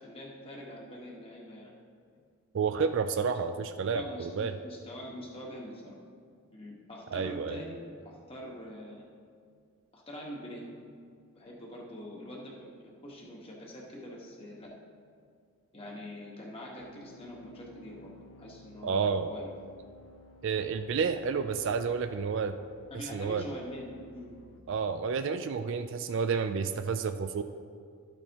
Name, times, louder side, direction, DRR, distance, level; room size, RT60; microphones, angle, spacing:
voice 1, 0.0-1.7 3.3-3.4 3.9-6.0 6.5-9.1 9.9-10.7 11.3-14.8 15.7-18.1 18.4-19.5 22.9-24.3, equal, 25° left, -2 dB, 1.5 m, -44 dB
voice 2, 2.5-4.6 7.1-7.6 18.8-19.3 20.4-22.6 23.1-23.4 24.7-27.4, right 5 dB, 55° right, 9 dB, 0.3 m, -30 dB
sound 1, 16.8-24.6, left 2 dB, 65° left, 0.6 m, -56 dB
13.0 x 8.8 x 3.0 m, 2.2 s
head